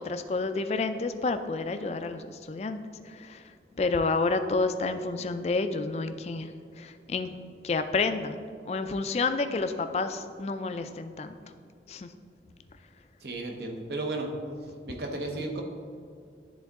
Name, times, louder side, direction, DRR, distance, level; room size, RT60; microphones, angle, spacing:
voice 1, 0.0-2.8 3.0-7.4 7.6-11.5 11.9-12.1, left 3 dB, 35° left, 9 dB, 0.3 m, -30 dB
voice 2, 13.2-14.3 14.9-15.6, right 2 dB, 70° right, 2 dB, 0.9 m, -33 dB
10.5 x 3.8 x 3.6 m, 2.3 s
head